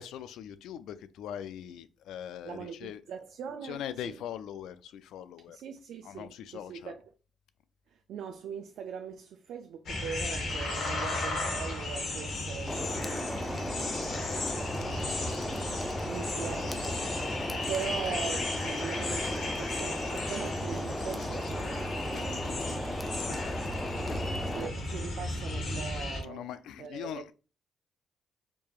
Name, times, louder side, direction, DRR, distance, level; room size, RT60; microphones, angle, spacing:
voice 1, 0.0-3.0 3.6-5.6 6.0-6.9 14.8-15.1 23.2-23.7 25.8-25.9 26.2-27.3, left 10 dB, 85° left, 0.3 m, -42 dB
voice 2, 2.4-4.2 5.5-7.0 7.9-22.8 23.3-23.4 24.4-27.3, right 7 dB, 75° right, 0.3 m, -42 dB
sound 1, 9.9-26.2, left 2 dB, 70° left, 1.4 m, -35 dB
sound 2, 12.7-24.7, left 1 dB, 10° left, 0.4 m, -36 dB
sound 3, 19.0-25.2, left 3 dB, 45° left, 0.8 m, -49 dB
4.6 x 2.8 x 2.4 m
cardioid pair, 90°, 0 cm